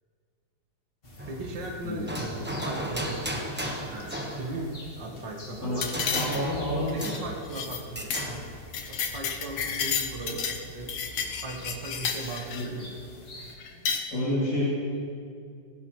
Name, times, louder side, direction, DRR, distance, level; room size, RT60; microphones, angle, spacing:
sound 1, 1.0-13.5, left 1 dB, 30° left, 1.6 m, -45 dB
sound 2, 1.2-1.6 2.1-4.6 5.9-7.5 7.9-8.4, right 1 dB, 10° right, 0.6 m, -35 dB
voice 1, 1.3-3.5 3.9-5.9 6.3-8.4 8.9-10.9 11.4-13.0, right 2 dB, 55° right, 0 dB, 2.1 m, -38 dB
sound 3, 5.8-6.6 6.9-7.2 7.5-7.8 8.1-8.3 8.6-10.6 10.9-12.7 13.6-14.0, left 6 dB, 80° left, 1.7 m, -31 dB
voice 2, 6.1-6.9 12.5-12.6 14.1-14.6, equal, 50° left, -9 dB, 4.0 m, -28 dB
16.5 x 15.5 x 3.2 m, 2.3 s
omnidirectional pair, 2.4 m